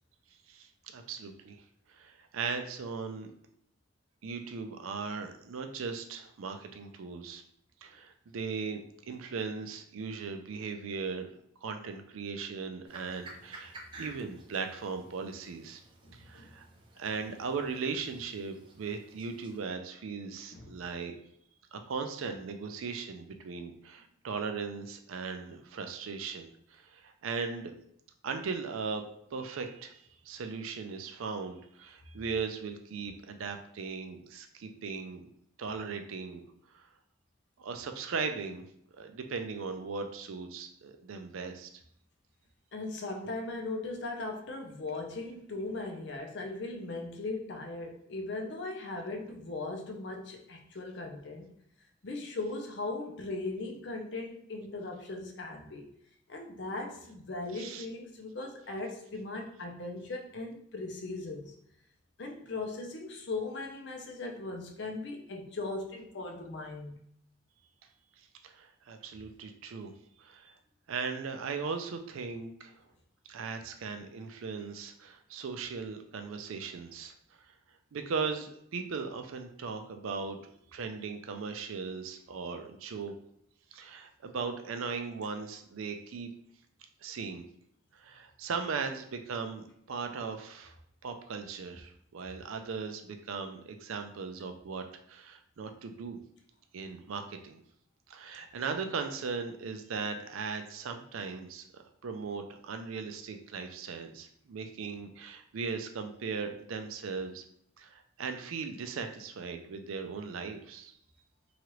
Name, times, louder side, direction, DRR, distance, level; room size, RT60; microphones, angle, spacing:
voice 1, 0.5-1.6 1.9-3.3 4.2-7.4 7.8-11.3 11.6-15.8 16.1-16.7 17.0-21.2 21.7-27.7 28.2-29.1 29.3-35.3 35.6-36.4 36.7-36.9 37.6-38.6 39.0-41.7 57.5-57.9 68.2-69.9 70.2-70.6 70.9-72.8 73.3-77.1 77.9-80.4 80.7-83.1 83.7-86.3 87.0-87.4 87.9-90.7 91.0-96.2 96.7-97.6 98.1-107.4 107.8-110.9, right 5 dB, 90° right, 6 dB, 0.4 m, -38 dB
sound 1, 12.8-19.6, right 2 dB, 25° right, 0.4 m, -52 dB
voice 2, 16.0-16.5 20.5-20.8 42.7-51.5 52.0-55.9 56.3-61.5 62.2-67.0, left 2 dB, 60° left, 2 dB, 0.5 m, -38 dB
2.9 x 2.4 x 3.0 m, 0.72 s
head